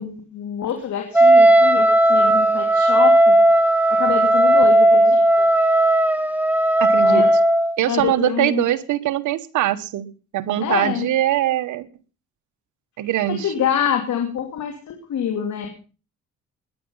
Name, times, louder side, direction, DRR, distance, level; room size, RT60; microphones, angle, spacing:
voice 1, 0.0-3.4 3.9-5.5 7.0-7.3 7.9-8.6 10.6-11.1 13.3-15.7, left 9 dB, 70° left, 2.8 m, -26 dB
Wind instrument woodwind instrument, 1.1-7.8, right 1 dB, 5° right, 1.9 m, -15 dB
voice 2, 6.8-7.3 7.8-11.9 13.0-13.5, right 13 dB, 80° right, 1.3 m, -22 dB
20.0 x 9.9 x 5.5 m
cardioid pair, 90°, 30 cm